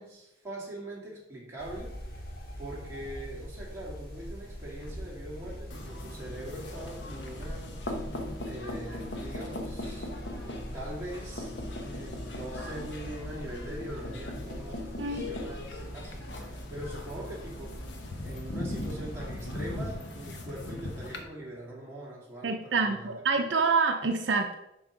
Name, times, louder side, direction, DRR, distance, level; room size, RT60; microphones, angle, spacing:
voice 1, 0.0-2.2 2.6-7.9 8.4-11.5 11.8-17.8 18.2-23.4, right 1 dB, 15° right, -6 dB, 2.7 m, -42 dB
sound 1, 1.6-19.9, equal, 50° left, 1.6 m, -43 dB
sound 2, 5.7-21.2, left 1 dB, 70° left, 1.1 m, -39 dB
voice 2, 22.4-24.5, right 4 dB, 70° right, 5 dB, 0.6 m, -27 dB
6.1 x 5.5 x 5.2 m, 0.87 s
head